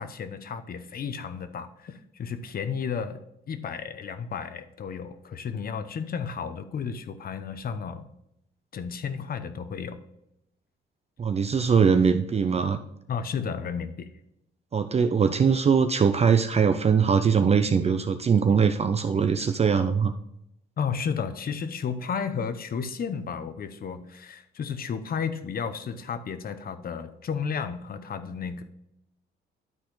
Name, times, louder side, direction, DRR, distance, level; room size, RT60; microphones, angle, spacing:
voice 1, 0.0-3.2 3.5-8.1 8.7-10.0 13.1-14.1 20.8-28.6, left 6 dB, 50° left, 10 dB, 0.8 m, -33 dB
voice 2, 11.2-12.8 14.7-20.1, right 6 dB, 30° right, 8 dB, 0.5 m, -22 dB
12.0 x 4.2 x 3.9 m, 0.81 s
cardioid pair, 90°, 20 cm